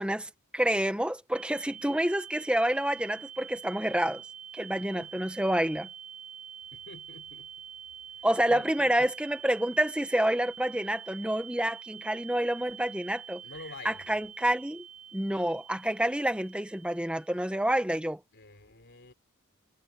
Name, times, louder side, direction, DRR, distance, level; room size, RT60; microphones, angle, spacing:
voice 1, 0.0-4.2 4.5-5.9 8.2-13.4 13.8-14.8 15.1-18.2, right 1 dB, 5° right, 1.4 m, -28 dB
sound 1, 1.3-17.7, right 8 dB, 35° right, 6.3 m, -46 dB
voice 2, 6.7-7.5 8.1-9.1 13.4-14.1 18.3-19.1, left 3 dB, 55° left, 3.7 m, -46 dB
head